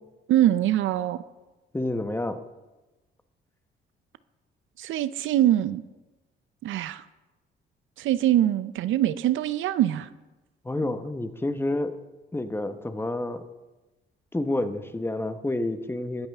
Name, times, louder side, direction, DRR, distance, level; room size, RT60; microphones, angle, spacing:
voice 1, 0.3-1.2 4.8-5.8 6.6-7.1 8.0-10.1, right 12 dB, 80° right, 15 dB, 0.6 m, -23 dB
voice 2, 1.7-2.4 10.6-12.0 12.3-13.4 14.3-16.3, left 2 dB, 10° left, 9 dB, 1.0 m, -29 dB
21.0 x 8.8 x 3.5 m, 1.1 s
cardioid pair, 90°, 20 cm